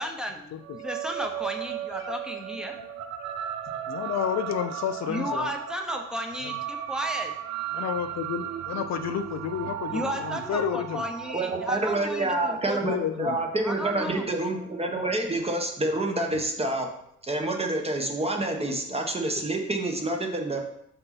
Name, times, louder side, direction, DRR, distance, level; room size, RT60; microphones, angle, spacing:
voice 1, 0.0-2.7 5.0-7.3 9.9-13.4 13.6-14.2 19.4-19.5, equal, ahead, 3 dB, 1.0 m, -34 dB
sound 1, 0.6-15.3, right 10 dB, 65° right, 0.5 m, -36 dB
voice 2, 3.9-5.5 7.7-11.0 12.8-13.4, left 8 dB, 60° left, 9 dB, 0.5 m, -30 dB
voice 3, 11.3-16.9 17.2-20.6, right 2 dB, 20° right, 2 dB, 1.2 m, -28 dB
5.5 x 5.5 x 4.1 m, 0.76 s
cardioid pair, 90°, 30 cm